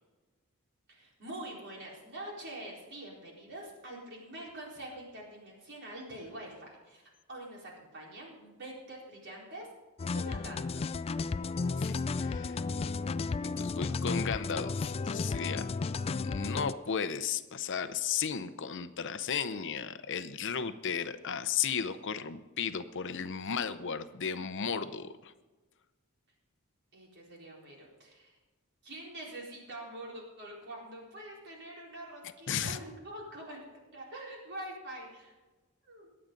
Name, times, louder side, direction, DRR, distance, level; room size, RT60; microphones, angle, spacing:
voice 1, 0.9-7.0 7.3-9.7 10.1-10.9 26.9-28.4 28.8-33.6 33.9-35.3 35.8-36.1, right 1 dB, 55° right, -2 dB, 4.2 m, -45 dB
sound 1, 10.0-16.7, left 4 dB, 25° left, 0.3 m, -33 dB
voice 2, 11.8-12.6 13.4-15.7 16.2-25.3 32.5-32.8, left 7 dB, 60° left, 12 dB, 0.7 m, -35 dB
22.5 x 8.8 x 3.9 m, 1.2 s
head